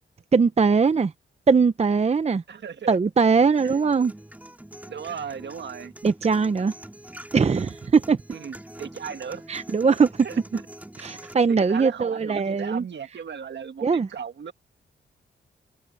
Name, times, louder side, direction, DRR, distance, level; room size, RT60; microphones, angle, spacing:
voice 1, 0.3-1.1 1.5-2.4 2.9-4.1 6.0-6.7 7.3-8.2 9.5-10.3 11.0-12.8 13.8-14.1, right 5 dB, 35° right, 0.8 m, -21 dB
voice 2, 2.5-3.0 3.6-3.8 4.8-5.9 8.3-9.5 10.2-10.4 11.5-14.5, right 7 dB, 60° right, 1.7 m, -36 dB
sound 1, 3.3-11.3, right 1 dB, 10° right, 3.1 m, -44 dB
cardioid pair, 85°, 20 cm